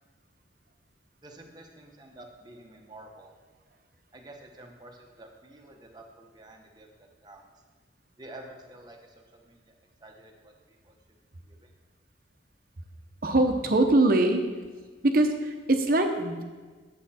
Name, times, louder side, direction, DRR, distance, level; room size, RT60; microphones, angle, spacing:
voice 1, 1.2-3.3 4.1-7.4 8.2-9.8 10.0-10.9 11.5-11.7, right 1 dB, 20° right, 1 dB, 1.0 m, -49 dB
voice 2, 13.2-14.4 15.0-16.4, right 2 dB, 45° right, 5 dB, 0.9 m, -22 dB
9.4 x 7.2 x 4.3 m, 1.4 s
head